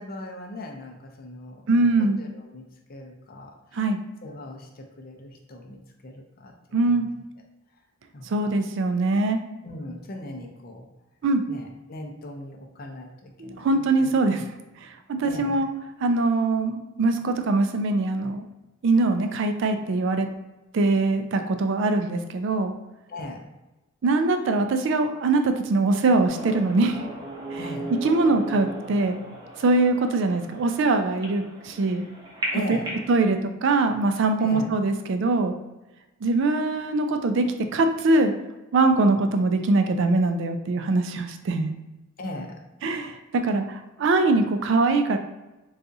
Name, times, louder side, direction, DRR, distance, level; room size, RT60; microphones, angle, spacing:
voice 1, 0.0-2.6 2.9-6.5 6.9-7.1 8.1-8.6 9.6-10.9 11.5-14.2 15.2-15.6 23.1-23.4 27.6-28.0 32.5-32.9 34.4-34.7 42.2-42.6, left 1 dB, 45° left, 2 dB, 0.5 m, -38 dB
voice 2, 1.7-2.2 3.8-4.0 6.7-7.1 8.2-9.4 11.2-11.4 13.4-14.4 15.1-15.7 16.0-18.4 18.8-20.3 20.7-22.7 24.0-27.0 27.5-27.6 28.0-29.2 29.6-32.0 32.7-32.8 33.1-35.6 36.2-37.5 37.7-38.3 38.7-41.7 42.8-45.2, right 3 dB, 65° right, 7 dB, 0.4 m, -22 dB
sound 1, 26.3-33.1, right 1 dB, 20° right, 0.7 m, -36 dB
4.0 x 2.4 x 2.6 m, 1.0 s
head